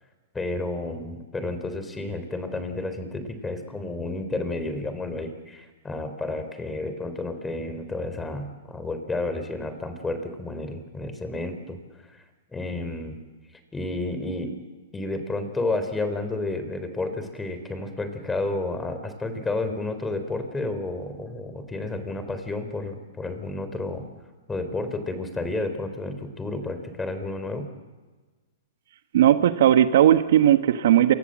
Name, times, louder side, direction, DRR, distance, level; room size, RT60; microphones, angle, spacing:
voice 1, 0.3-11.8 12.1-12.2 12.5-13.2 13.7-14.5 14.9-24.1 24.5-27.7, left 2 dB, 10° left, 9 dB, 3.8 m, -31 dB
voice 2, 29.1-31.1, right 11 dB, 65° right, 9 dB, 1.4 m, -17 dB
27.5 x 24.5 x 7.6 m, 1.3 s
hypercardioid pair, 140°, 0 cm